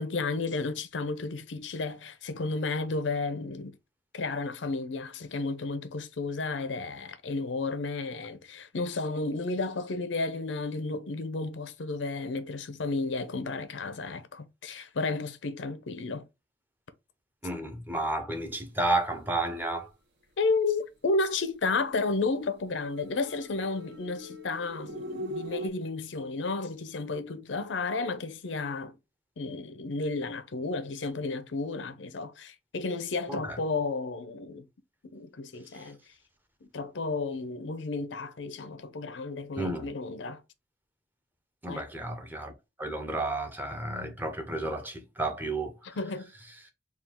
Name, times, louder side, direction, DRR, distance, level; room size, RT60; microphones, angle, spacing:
voice 1, 0.0-3.8 4.1-16.3 20.4-29.0 29.4-34.6 35.0-36.0 36.6-40.4 41.7-41.8 45.8-46.3, left 3 dB, 85° left, 0.6 m, -32 dB
voice 2, 17.4-19.9 33.3-33.6 35.7-35.9 39.6-39.9 41.6-46.0, right 2 dB, 10° right, 0.6 m, -32 dB
sound 1, 22.8-25.7, equal, 65° right, 1.0 m, -40 dB
3.6 x 2.3 x 4.3 m
head